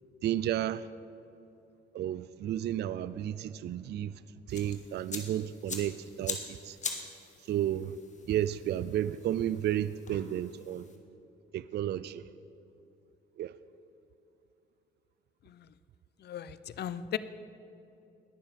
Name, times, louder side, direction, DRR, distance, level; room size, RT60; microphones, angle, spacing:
voice 1, 0.2-0.9 1.9-4.2 4.5-6.8 7.5-8.0 8.3-10.9 11.5-12.2 13.4-13.5, right 11 dB, 55° right, 16 dB, 0.4 m, -32 dB
sound 1, 4.5-11.0, left 4 dB, 35° left, 1.8 m, -43 dB
voice 2, 16.2-17.2, left 10 dB, 55° left, 15 dB, 0.6 m, -37 dB
19.5 x 7.0 x 5.8 m, 2.9 s
cardioid pair, 90°, 20 cm